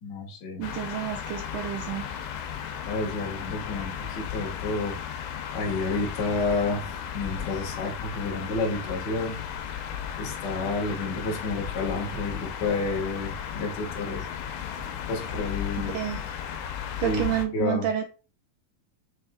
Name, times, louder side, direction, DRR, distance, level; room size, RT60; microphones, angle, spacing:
voice 1, 0.0-0.6 2.8-5.2 5.5-9.4 10.2-14.2 15.1-16.0 17.0-17.2 17.5-17.8, left 3 dB, 55° left, -1 dB, 1.2 m, -30 dB
sound 1, 0.6-17.5, left 8 dB, 85° left, 2.5 m, -35 dB
voice 2, 0.6-2.1 15.8-16.2 17.0-18.0, right 11 dB, 75° right, 3 dB, 2.1 m, -29 dB
6.3 x 3.4 x 2.3 m, 0.33 s
omnidirectional pair, 4.3 m